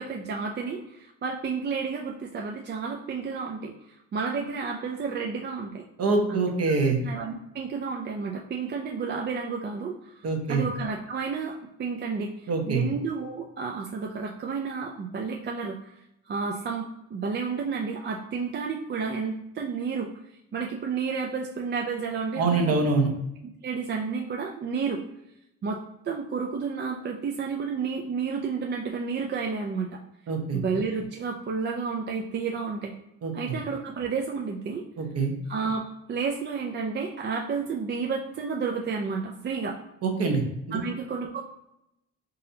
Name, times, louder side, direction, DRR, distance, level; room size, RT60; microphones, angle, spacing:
voice 1, 0.0-3.7 4.1-5.8 6.3-6.4 6.8-10.2 10.5-11.5 11.8-15.9 16.3-20.1 20.5-22.8 23.6-25.0 25.6-25.8 26.0-30.0 30.5-32.9 33.3-34.8 35.5-35.8 36.1-39.8 40.7-41.4, right 5 dB, 35° right, 0 dB, 0.4 m, -31 dB
voice 2, 6.0-7.0 10.2-10.6 12.5-12.8 22.4-23.1 30.3-30.6 33.2-33.5 35.0-35.3 40.0-40.8, right 4 dB, 55° right, 2 dB, 0.9 m, -25 dB
3.9 x 2.6 x 2.7 m, 0.83 s
cardioid pair, 90°, 30 cm